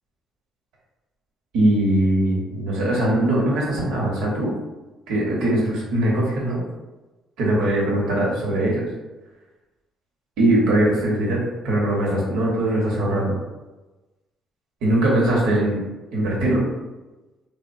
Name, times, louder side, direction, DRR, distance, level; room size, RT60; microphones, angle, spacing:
voice 1, 1.5-4.5 5.1-6.6 7.4-8.8 10.4-13.3 14.8-15.8 16.1-16.6, right 1 dB, 90° right, -3 dB, 0.9 m, -21 dB
3.4 x 2.1 x 2.5 m, 1.1 s
cardioid pair, 105°, 0 cm